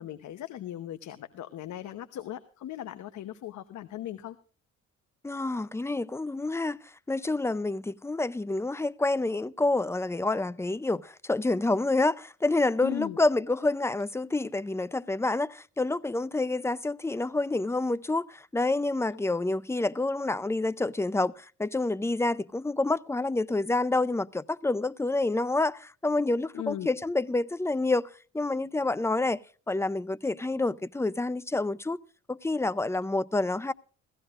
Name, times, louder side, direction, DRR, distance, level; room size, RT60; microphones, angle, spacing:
voice 1, 0.0-4.4 12.8-13.2 26.5-26.9, left 12 dB, 70° left, 1.0 m, -38 dB
voice 2, 5.2-29.4 29.7-32.0 32.3-33.7, left 2 dB, 10° left, 0.5 m, -28 dB
17.0 x 15.5 x 2.5 m
cardioid pair, 90°, 30 cm